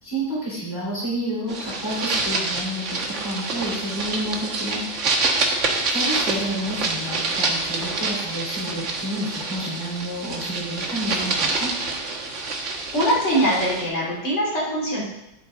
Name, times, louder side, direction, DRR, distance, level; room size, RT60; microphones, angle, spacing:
voice 1, 0.0-4.8 5.9-11.7, equal, 10° left, -7 dB, 3.8 m, -30 dB
sound 1, 1.5-13.9, right 3 dB, 45° right, 1.4 m, -27 dB
voice 2, 12.9-15.0, equal, 40° left, -5 dB, 3.6 m, -22 dB
10.5 x 8.4 x 3.8 m, 0.85 s
omnidirectional pair, 1.9 m